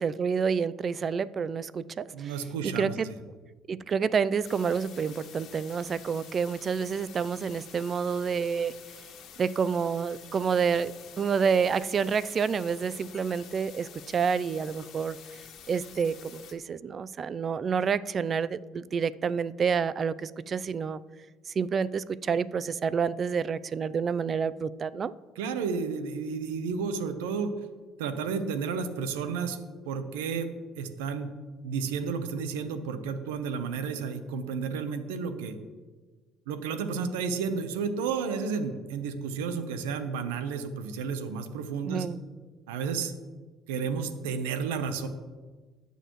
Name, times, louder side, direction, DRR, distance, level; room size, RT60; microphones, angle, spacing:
voice 1, 0.0-2.3 2.6-3.1 3.7-8.7 9.4-15.2 15.7-21.0 21.6-25.1 41.8-42.2, right 6 dB, 45° right, 18 dB, 0.4 m, -28 dB
voice 2, 2.1-3.1 25.4-27.5 28.0-29.6 29.8-30.5 30.8-31.3 31.6-35.6 36.5-42.1 42.7-43.1 43.7-45.1, right 5 dB, 90° right, 9 dB, 0.9 m, -32 dB
sound 1, 4.4-16.5, left 8 dB, 65° left, 1.6 m, -49 dB
20.0 x 6.8 x 3.1 m, 1.4 s
supercardioid pair, 70°, 0 cm